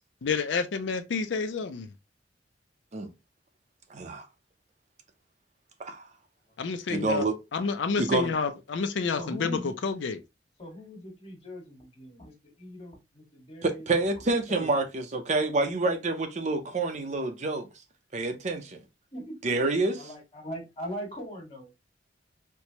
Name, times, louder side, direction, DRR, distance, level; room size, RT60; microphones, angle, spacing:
voice 1, 0.2-1.9 6.6-7.2 7.5-10.2, left 5 dB, 85° left, 0.5 m, -29 dB
voice 2, 3.9-4.3 5.8-6.0 6.9-7.4 8.0-8.3 13.6-17.7 18.1-18.8 19.4-20.1, right 2 dB, 40° right, 0.6 m, -28 dB
voice 3, 9.2-9.7 10.6-13.8 14.5-14.7 19.1-19.4 20.0-21.7, equal, 35° left, 1.5 m, -40 dB
4.5 x 2.1 x 2.8 m
head